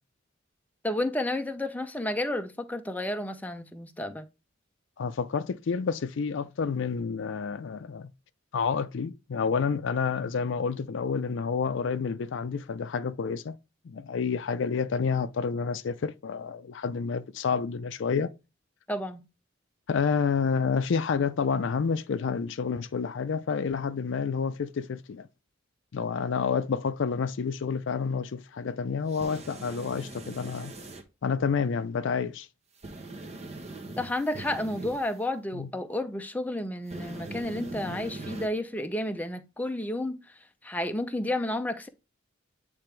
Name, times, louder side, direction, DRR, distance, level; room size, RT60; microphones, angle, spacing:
voice 1, 0.8-4.2 18.9-19.2 34.0-40.2 40.6-41.9, left 1 dB, 10° left, 0.5 m, -31 dB
voice 2, 5.0-8.1 8.5-13.6 13.8-18.3 19.9-25.3 25.9-30.7 31.2-32.5 35.5-35.7 37.9-38.0, left 5 dB, 65° left, 0.4 m, -29 dB
sound 1, 29.1-31.0 32.8-35.1 36.9-38.5, right 2 dB, 35° right, 1.0 m, -41 dB
8.6 x 3.4 x 3.3 m
head